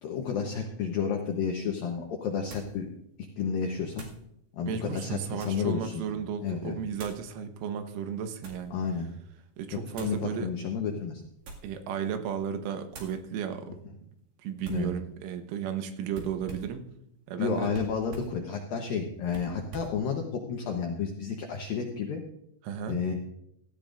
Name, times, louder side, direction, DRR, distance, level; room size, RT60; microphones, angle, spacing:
voice 1, 0.0-2.9 3.4-4.1 4.6-6.1 6.4-6.8 8.7-9.1 9.9-11.2 14.7-14.9 17.4-22.2 22.9-23.1, left 6 dB, 80° left, 2 dB, 2.0 m, -31 dB
sound 1, 1.4-1.5 2.5-2.8 3.9-4.2 5.0-5.7 6.9-7.3 8.0-8.7 9.9-10.2 11.3-11.8 12.2-12.5 12.9-13.2 14.6-14.9 16.1-16.8 17.7-18.4 19.3-20.0, right 3 dB, 55° right, 3.2 m, -45 dB
voice 2, 4.7-8.8 9.6-10.5 11.6-13.7 14.4-16.9 17.3-17.7 22.6-23.0, right 8 dB, 85° right, 7 dB, 3.6 m, -34 dB
17.0 x 14.5 x 2.5 m, 0.75 s
omnidirectional pair, 5.6 m